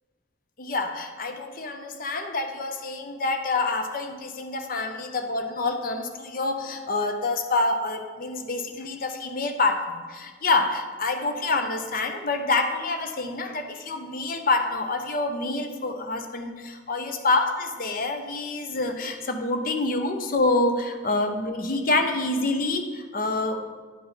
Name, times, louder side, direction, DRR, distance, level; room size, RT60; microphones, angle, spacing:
voice 1, 0.6-23.6, left 3 dB, 50° left, 6 dB, 0.7 m, -27 dB
10.0 x 3.7 x 5.7 m, 1.5 s
head